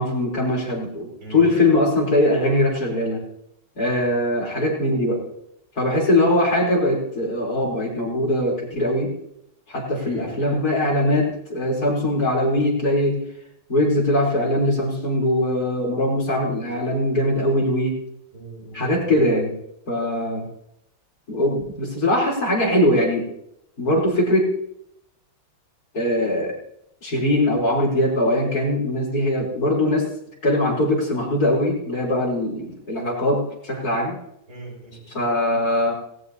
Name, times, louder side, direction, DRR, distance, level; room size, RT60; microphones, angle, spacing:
voice 1, 0.0-3.2 3.8-5.2 5.8-9.1 9.7-13.2 13.7-17.9 18.7-19.5 19.9-20.4 21.3-23.3 23.8-24.5 25.9-26.5 27.0-30.1 30.4-34.2 35.1-35.9, left 1 dB, 45° left, -3 dB, 4.2 m, -21 dB
voice 2, 1.2-1.5 10.0-10.3 18.3-19.1 34.5-35.3, right 3 dB, 85° right, -3 dB, 7.9 m, -39 dB
18.5 x 18.0 x 2.8 m, 0.77 s
omnidirectional pair, 2.2 m